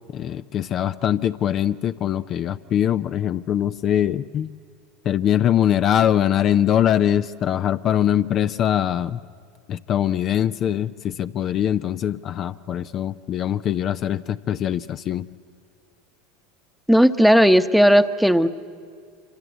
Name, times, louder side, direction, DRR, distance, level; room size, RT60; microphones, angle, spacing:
voice 1, 0.1-4.5 5.0-9.2 9.7-15.3, left 10 dB, 45° left, 11 dB, 0.6 m, -22 dB
voice 2, 16.9-18.5, equal, ahead, 11 dB, 1.0 m, -15 dB
25.5 x 25.5 x 8.1 m, 2.2 s
hypercardioid pair, 85°, 0 cm